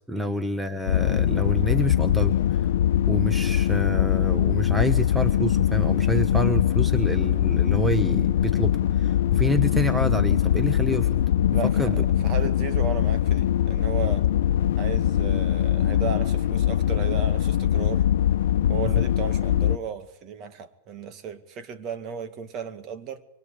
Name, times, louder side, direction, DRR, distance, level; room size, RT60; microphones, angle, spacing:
voice 1, 0.1-2.6 3.1-11.2 11.8-12.0, equal, 5° right, 1.2 m, -28 dB
sound 1, 0.9-19.8, left 11 dB, 80° left, 1.0 m, -22 dB
voice 2, 11.5-12.0 12.2-14.3 14.8-18.1 18.7-23.2, right 6 dB, 35° right, 2.2 m, -35 dB
24.5 x 23.0 x 8.5 m
supercardioid pair, 145°, 0 cm